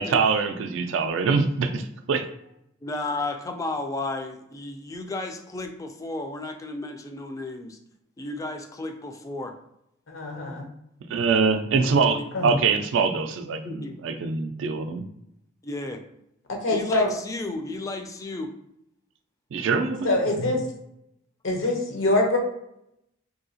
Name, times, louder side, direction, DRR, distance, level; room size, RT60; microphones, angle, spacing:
voice 1, 0.0-2.3 11.1-15.0 19.5-20.5, right 5 dB, 65° right, 8 dB, 0.3 m, -24 dB
voice 2, 2.8-7.8 8.2-9.5 13.6-14.0 14.5-14.6 15.6-16.0 16.7-18.5, left 2 dB, 15° left, 4 dB, 0.3 m, -33 dB
voice 3, 10.1-10.7 12.3-12.5 16.6-17.1 20.0-20.6 21.4-22.4, left 2 dB, 85° left, 1 dB, 0.8 m, -24 dB
2.8 x 2.7 x 2.7 m, 0.78 s
head